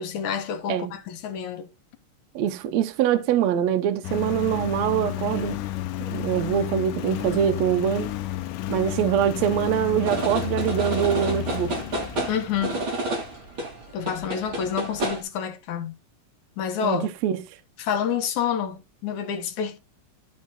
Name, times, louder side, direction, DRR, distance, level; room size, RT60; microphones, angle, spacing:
voice 1, 0.0-1.7 12.3-12.8 13.9-15.9 16.6-17.1 17.8-19.8, left 8 dB, 70° left, 2.5 m, -28 dB
voice 2, 2.3-5.6 6.1-8.1 8.7-11.7 16.8-17.4, right 9 dB, 75° right, 1.7 m, -24 dB
Engine, 4.0-13.5, left 14 dB, 85° left, 2.3 m, -32 dB
sound 1, 10.1-15.2, right 2 dB, 40° right, 3.6 m, -30 dB
12.0 x 4.1 x 4.1 m
omnidirectional pair, 3.8 m